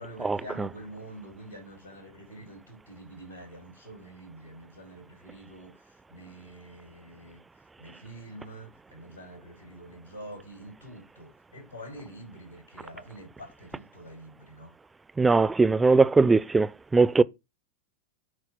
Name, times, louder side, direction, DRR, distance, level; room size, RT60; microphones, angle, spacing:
voice 1, 0.0-7.4 7.8-14.7, right 1 dB, 90° left, 3.8 m, -46 dB
voice 2, 15.2-17.2, right 4 dB, 10° right, 0.4 m, -20 dB
8.2 x 4.4 x 4.4 m
figure-of-eight pair, 90°, 0 cm